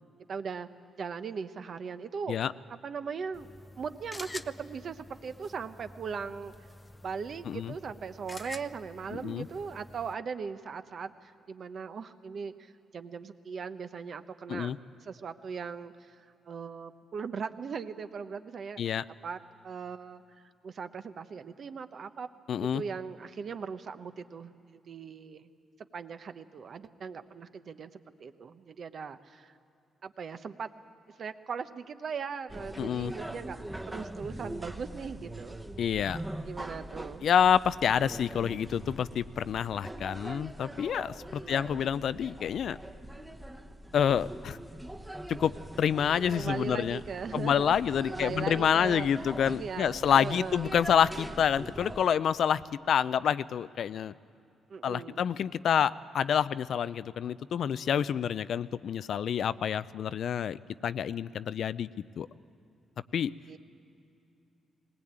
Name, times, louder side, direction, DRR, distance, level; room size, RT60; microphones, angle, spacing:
voice 1, 0.3-0.7 0.9-2.4 2.8-3.5 3.8-6.5 7.0-14.7 15.0-18.8 19.2-19.4 19.6-22.3 22.5-25.5 25.9-27.9 28.2-29.6 30.0-30.7 31.1-33.6 33.9-35.6 36.5-37.3 41.2-41.7 46.3-47.8 48.1-50.7 54.7-55.2 63.5-63.6, right 6 dB, 55° right, 10 dB, 0.9 m, -39 dB
sound 1, 3.3-10.1, left 2 dB, 20° left, 0.7 m, -48 dB
voice 2, 9.1-9.5 14.5-14.8 18.8-19.0 22.5-22.8 32.8-33.1 35.8-36.2 37.2-42.8 43.9-44.6 45.3-47.0 47.3-54.1 54.8-61.9 62.2-62.3 63.1-63.3, left 8 dB, 70° left, 16 dB, 0.4 m, -28 dB
sound 2, 32.5-52.0, right 1 dB, 15° right, 1.1 m, -42 dB
19.5 x 19.5 x 8.8 m, 2.7 s
cardioid pair, 95°, 0 cm